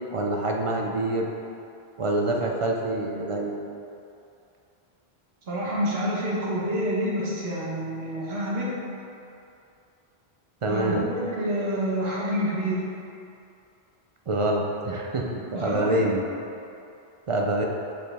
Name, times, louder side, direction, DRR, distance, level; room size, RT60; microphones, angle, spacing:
voice 1, 0.1-1.3 2.0-3.6 10.6-11.0 14.3-16.2 17.3-17.6, right 1 dB, 50° right, 0 dB, 0.4 m, -26 dB
voice 2, 5.5-8.7 10.7-12.8 15.5-16.1, equal, 75° right, -5 dB, 1.3 m, -28 dB
6.6 x 4.2 x 3.4 m, 2.6 s
omnidirectional pair, 1.1 m